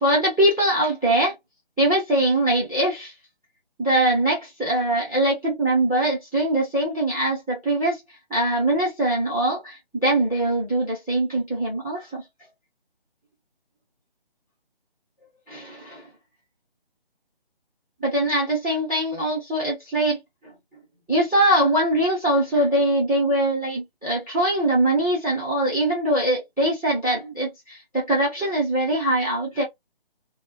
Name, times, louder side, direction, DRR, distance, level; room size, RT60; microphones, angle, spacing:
voice 1, 0.0-1.3 1.8-3.1 3.8-8.0 8.3-12.2 15.5-16.0 18.0-20.2 21.1-29.6, right 1 dB, ahead, 0.6 m, -22 dB
2.3 x 2.1 x 2.6 m
figure-of-eight pair, 160°, 30 cm